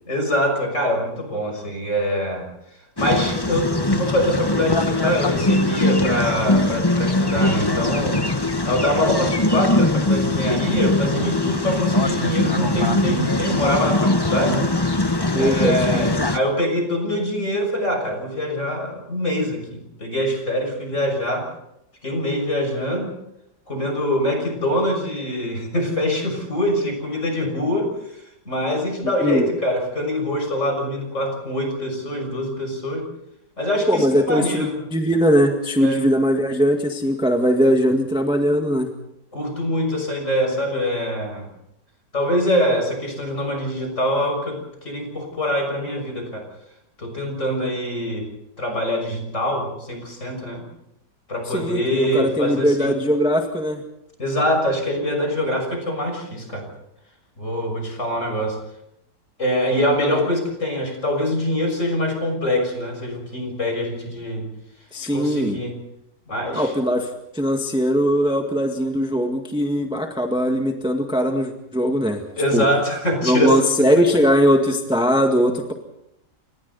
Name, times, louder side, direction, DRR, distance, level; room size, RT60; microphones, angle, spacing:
voice 1, 0.1-2.5 3.0-14.7 15.3-21.5 22.0-23.1 23.7-33.1 33.6-34.8 35.8-36.0 39.3-41.5 42.1-46.4 47.0-48.3 48.6-50.6 51.3-53.0 54.2-56.6 57.4-58.6 59.4-64.4 65.0-65.8 66.3-66.7 72.4-73.6, equal, 45° left, 4 dB, 6.8 m, -24 dB
sound 1, 3.0-16.4, left 2 dB, 15° left, 1.1 m, -21 dB
voice 2, 15.3-16.0 29.0-29.4 33.9-38.9 51.4-53.8 64.9-65.6 66.5-72.2 72.5-72.6 73.2-75.7, equal, 5° right, 3 dB, 1.7 m, -20 dB
29.0 x 26.0 x 4.2 m, 0.81 s
omnidirectional pair, 1.8 m